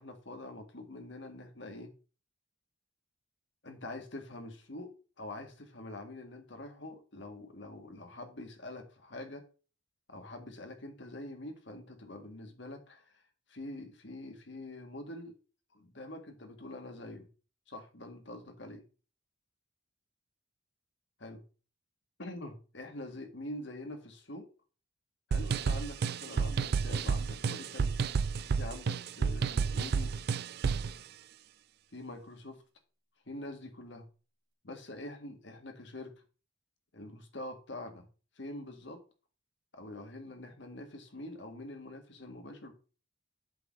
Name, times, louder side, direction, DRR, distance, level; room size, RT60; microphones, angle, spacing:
voice 1, 0.0-1.9 3.6-4.9 5.2-9.5 10.1-13.2 13.5-15.4 15.7-17.3 17.7-18.8 21.2-21.4 22.2-24.5 25.3-27.9 28.5-30.1 31.9-32.6 33.2-34.1 34.6-36.1 36.9-38.1 38.3-39.0 39.7-42.7, left 1 dB, 60° left, 5 dB, 1.6 m, -45 dB
sound 1, 25.3-30.9, right 5 dB, 50° right, 0.3 m, -31 dB
7.9 x 3.9 x 6.2 m, 0.36 s
head